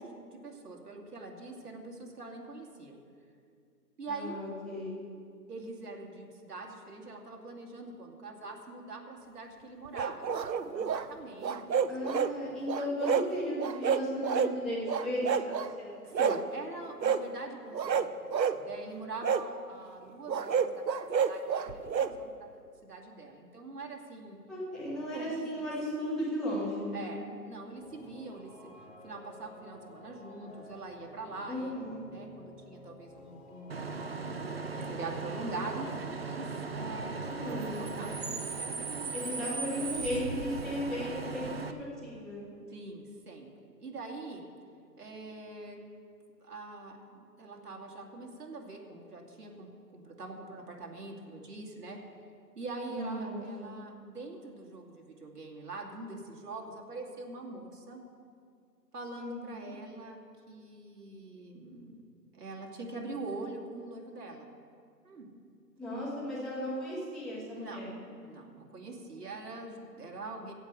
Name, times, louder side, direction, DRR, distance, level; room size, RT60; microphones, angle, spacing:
voice 1, 0.0-3.0 4.0-4.5 5.5-12.7 16.0-22.5 22.8-24.4 25.1-25.4 26.9-28.5 29.0-33.9 34.7-39.4 42.7-44.5 45.0-45.8 46.4-52.0 52.5-58.0 58.9-60.2 60.5-61.9 62.3-64.5 65.0-65.3 67.5-67.9 68.2-70.5, right 3 dB, 65° right, 0 dB, 2.6 m, -43 dB
voice 2, 4.1-5.0 11.9-15.9 24.5-27.3 31.5-32.0 37.4-37.8 39.1-42.5 52.9-53.8 59.1-59.7 65.8-67.9, equal, ahead, -9 dB, 1.3 m, -36 dB
sound 1, 9.9-11.1 11.4-12.3 12.7-13.3 13.6-14.5 14.9-15.7 16.1-16.4 17.0-17.2 17.7-18.6 19.2-19.5 20.3-22.1, right 7 dB, 90° right, 0.8 m, -29 dB
sound 2, 27.8-38.5, left 1 dB, 40° left, 1.9 m, -52 dB
Bus / Idling / Screech, 33.7-41.7, right 4 dB, 40° right, 0.6 m, -37 dB
15.5 x 5.4 x 8.2 m, 2.2 s
figure-of-eight pair, 155°, 49 cm